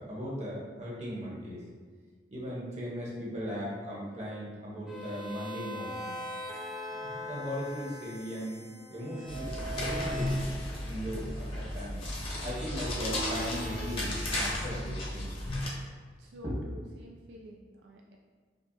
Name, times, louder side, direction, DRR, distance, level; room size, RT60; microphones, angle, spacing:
voice 1, 0.0-1.6 2.3-6.2 6.9-8.6 8.9-10.3 10.9-12.0 12.4-15.3 16.4-16.5, equal, 40° right, -5 dB, 0.9 m, -38 dB
sound 1, 4.9-10.6 12.4-14.7, equal, 5° right, 0.5 m, -41 dB
sound 2, 9.3-15.7, left 1 dB, 35° left, 0.8 m, -34 dB
voice 2, 16.2-18.2, left 1 dB, 85° right, 0 dB, 0.3 m, -50 dB
5.0 x 2.2 x 2.7 m, 1.5 s
head